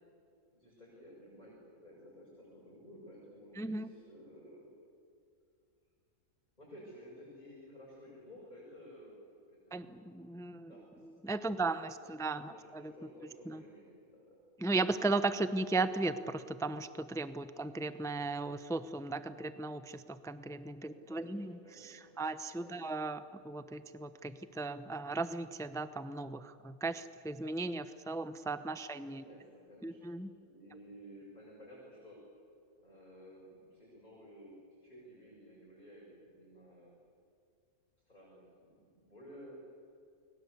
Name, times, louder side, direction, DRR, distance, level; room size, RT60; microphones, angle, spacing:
voice 1, 0.5-4.7 6.6-9.2 9.5-9.9 10.4-11.1 11.4-11.7 12.5-14.4 20.8-22.2 22.6-22.7 29.1-32.2 32.7-36.9 38.1-39.6, equal, 25° left, -5 dB, 7.2 m, -54 dB
voice 2, 3.6-3.9 9.7-10.7 11.2-12.9 13.5-13.6 14.6-21.6 21.8-29.2 29.8-30.3, right 3 dB, 5° left, 12 dB, 0.4 m, -36 dB
30.0 x 22.0 x 8.2 m, 2.4 s
omnidirectional pair, 1.6 m